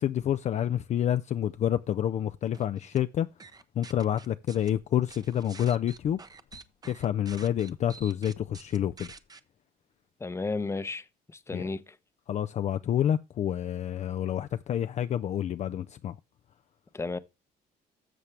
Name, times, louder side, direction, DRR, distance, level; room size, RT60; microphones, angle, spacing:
voice 1, 0.0-3.3 3.8-6.2 6.8-9.1 11.5-11.6 12.3-16.1, left 10 dB, 45° left, 0.4 m, -28 dB
sound 1, 2.5-3.0 3.4-4.7 5.1-9.4, right 4 dB, 25° right, 0.7 m, -48 dB
sound 2, 4.7-8.6 8.9-9.2, left 9 dB, 60° left, 0.8 m, -55 dB
voice 2, 10.2-11.1 11.3-12.0 16.9-17.2, left 3 dB, 15° left, 0.7 m, -33 dB
12.5 x 7.0 x 3.3 m
cardioid pair, 110°, 17 cm